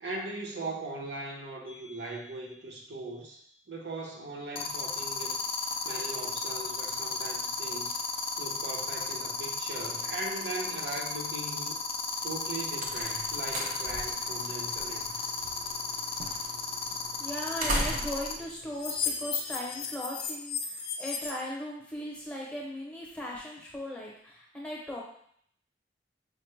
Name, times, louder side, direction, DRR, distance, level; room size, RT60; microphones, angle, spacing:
voice 1, 0.0-3.4 3.7-5.5 5.8-8.0 8.4-11.8 12.2-15.1, right 2 dB, 80° right, -1 dB, 0.7 m, -39 dB
sound 1, 1.7-2.0 4.6-18.3 18.8-21.3, left 5 dB, 30° left, 0.3 m, -33 dB
sound 2, 12.4-19.8, right 1 dB, 45° right, 0.5 m, -39 dB
voice 2, 17.2-25.0, equal, 5° left, -3 dB, 0.7 m, -38 dB
4.8 x 2.0 x 3.1 m, 0.65 s
head